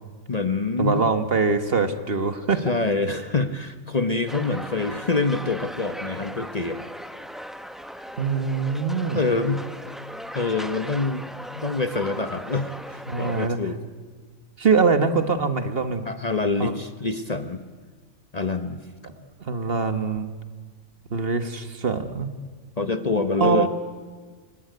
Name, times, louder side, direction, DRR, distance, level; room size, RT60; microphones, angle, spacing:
voice 1, 0.3-1.1 2.6-6.9 9.1-9.7 10.3-11.3 11.5-13.8 16.1-17.6 18.3-18.8 22.8-23.7, left 3 dB, 35° left, 9 dB, 1.0 m, -26 dB
voice 2, 0.8-2.7 8.2-9.2 13.1-13.6 14.6-16.1 16.6-16.7 19.2-20.3 21.1-22.3 23.4-23.7, right 4 dB, 50° right, 9 dB, 1.5 m, -23 dB
sound 1, 4.3-13.5, equal, ahead, 0.7 m, -38 dB
27.5 x 18.5 x 9.3 m, 1.5 s
omnidirectional pair, 1.4 m